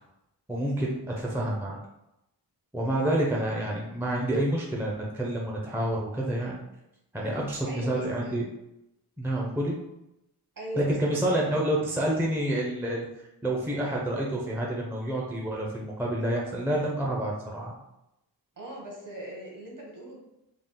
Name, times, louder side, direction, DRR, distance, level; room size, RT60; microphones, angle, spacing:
voice 1, 0.5-1.8 2.7-6.5 7.1-8.5 9.2-9.8 10.8-13.1 13.4-17.7, right 1 dB, 5° right, -3 dB, 0.6 m, -28 dB
voice 2, 7.6-8.5 10.5-11.6 18.6-20.2, right 1 dB, 50° right, -2 dB, 1.4 m, -40 dB
3.7 x 2.3 x 3.7 m, 0.89 s
wide cardioid pair, 95°, 42 cm